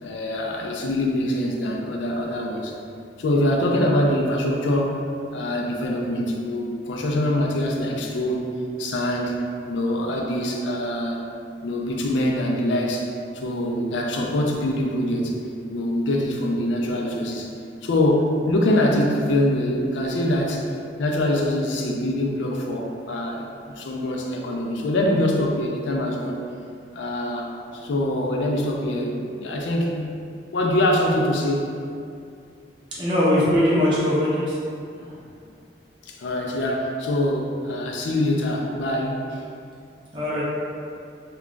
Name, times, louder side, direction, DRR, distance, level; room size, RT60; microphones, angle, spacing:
voice 1, 0.0-2.7 3.2-5.0 5.3-8.5 8.8-11.2 11.6-13.1 13.3-15.4 15.7-17.5 17.8-20.7 21.0-23.5 23.8-26.4 26.9-30.2 30.5-31.7 36.1-39.4, left 1 dB, 90° left, 0 dB, 0.4 m, -24 dB
voice 2, 33.0-34.6 34.9-35.1 40.1-40.4, left 1 dB, 25° right, -9 dB, 0.6 m, -21 dB
2.3 x 2.2 x 3.7 m, 2.4 s
head